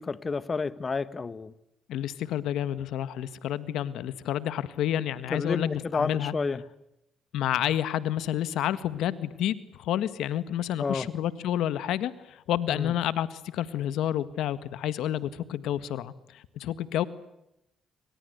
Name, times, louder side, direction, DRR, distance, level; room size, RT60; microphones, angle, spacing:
voice 1, 0.0-1.5 5.3-6.6 10.8-11.1 12.7-12.9, left 4 dB, 35° left, 16 dB, 1.6 m, -30 dB
voice 2, 1.9-6.3 7.3-17.0, left 11 dB, 85° left, 15 dB, 1.7 m, -29 dB
28.5 x 25.0 x 8.2 m, 0.85 s
cardioid pair, 90°, 0 cm